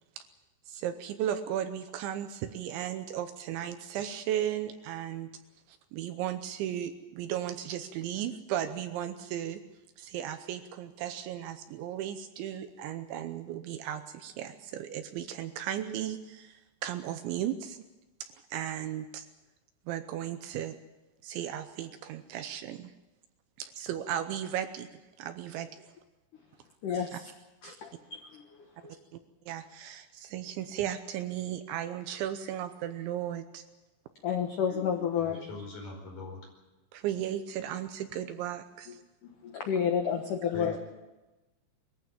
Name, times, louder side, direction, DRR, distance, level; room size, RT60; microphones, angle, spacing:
voice 1, 0.7-5.3 5.7-9.6 10.0-17.9 18.2-19.3 19.9-20.8 21.2-22.9 23.6-24.9 25.2-25.9 27.1-27.2 29.1-29.2 29.5-33.6 36.9-39.0, right 11 dB, 75° right, 9 dB, 2.8 m, -35 dB
voice 2, 26.8-27.2 27.6-28.4 28.8-28.9 34.2-35.5 39.4-40.8, left 7 dB, 80° left, 3 dB, 1.8 m, -30 dB
voice 3, 35.2-36.4 40.5-40.8, left 2 dB, 40° left, 1 dB, 6.2 m, -42 dB
22.0 x 15.0 x 8.8 m, 1.1 s
omnidirectional pair, 5.9 m